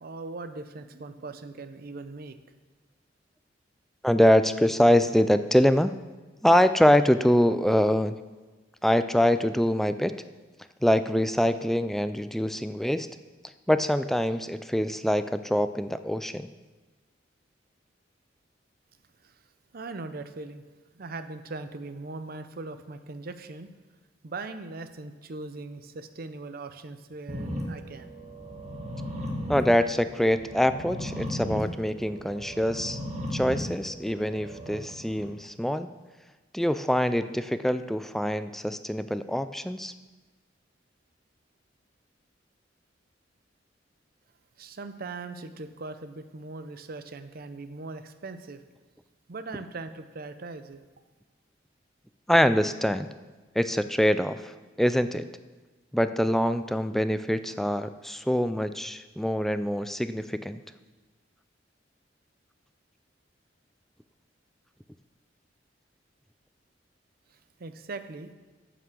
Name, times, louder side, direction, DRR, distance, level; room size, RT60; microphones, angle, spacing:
voice 1, 0.0-2.4 19.7-20.6 20.9-23.7 24.2-28.1 44.6-48.6 49.3-50.8 67.6-68.3, right 3 dB, 55° right, 10 dB, 0.6 m, -40 dB
voice 2, 4.0-5.9 6.4-8.1 8.8-10.1 10.8-13.1 13.7-16.5 29.5-33.0 33.3-35.9 36.5-39.9 52.3-53.1 53.6-55.3 55.9-60.6, equal, ahead, 11 dB, 0.3 m, -24 dB
sound 1, 27.3-35.3, equal, 35° right, 1.6 m, -36 dB
9.3 x 6.0 x 6.8 m, 1.3 s
head